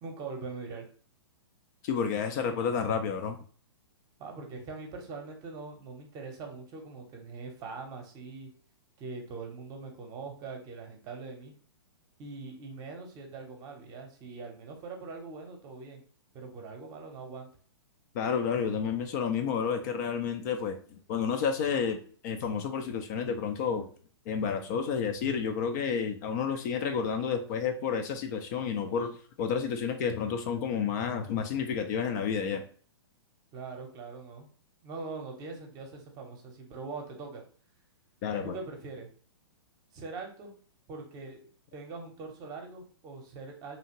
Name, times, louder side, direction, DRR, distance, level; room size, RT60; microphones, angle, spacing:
voice 1, 0.0-0.8 4.2-8.5 9.0-11.5 12.2-16.0 16.3-17.5 33.5-34.5 34.8-37.4 38.4-39.1 39.9-40.6 40.9-41.4 41.7-43.8, right 4 dB, 30° right, 3 dB, 0.8 m, -42 dB
voice 2, 1.8-3.4 18.1-20.8 21.1-23.9 24.3-29.1 29.4-32.6 38.2-38.6, left 6 dB, 40° left, 6 dB, 0.4 m, -30 dB
2.8 x 2.4 x 2.8 m, 0.44 s
hypercardioid pair, 120°, 14 cm